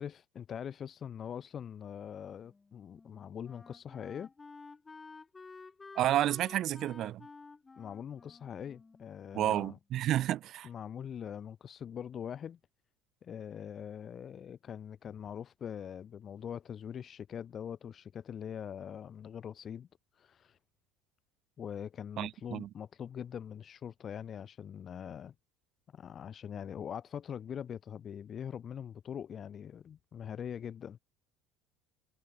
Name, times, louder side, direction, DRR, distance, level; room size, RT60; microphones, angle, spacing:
voice 1, 0.0-4.3 7.8-9.8 10.6-12.6 13.2-19.9 20.1-20.6 21.6-25.3 25.9-31.0, left 8 dB, 40° left, 1.0 m, -43 dB
Wind instrument woodwind instrument, 2.4-9.7, left 4 dB, 20° left, 2.8 m, -52 dB
voice 2, 6.0-7.2 9.3-10.7 22.2-22.7, right 13 dB, 55° right, 0.6 m, -30 dB
supercardioid pair, 85°, 0 cm